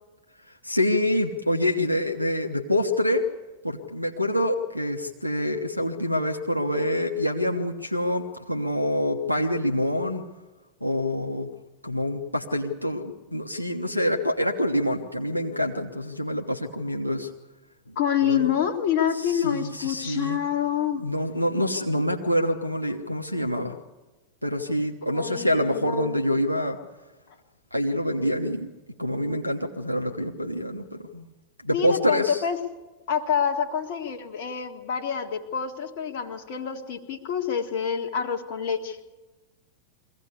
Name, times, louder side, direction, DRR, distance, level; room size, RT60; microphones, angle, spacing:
voice 1, 0.6-3.2 3.6-10.2 10.8-11.5 11.8-17.3 18.3-18.5 19.2-20.4 21.0-23.8 24.4-26.8 27.7-28.7 29.0-31.3 31.6-32.4, left 1 dB, 90° left, 1 dB, 1.1 m, -26 dB
voice 2, 18.0-21.0 25.1-26.2 31.7-32.6 33.1-39.0, left 8 dB, 50° left, 6 dB, 1.8 m, -27 dB
23.0 x 16.5 x 8.3 m, 1.2 s
figure-of-eight pair, 90°, 0 cm